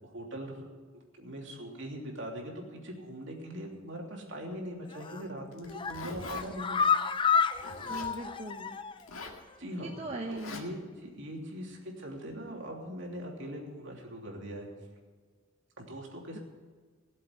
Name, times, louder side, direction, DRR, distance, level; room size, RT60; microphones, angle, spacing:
voice 1, 0.0-0.7 0.9-6.8 9.6-9.9 10.3-14.7 15.8-16.4, equal, 60° right, 0 dB, 3.0 m, -41 dB
sound 1, 4.9-5.3 5.7-9.1 9.4-9.5 9.8-9.9, left 6 dB, 25° left, 0.5 m, -30 dB
Zipper (clothing), 5.5-6.5 7.5-8.2 9.0-9.4 10.3-10.6, left 3 dB, 85° left, 2.0 m, -43 dB
voice 2, 7.9-8.8 9.8-10.6 16.3-16.4, right 2 dB, 30° right, 0 dB, 1.0 m, -39 dB
17.5 x 7.6 x 8.2 m, 1.5 s
head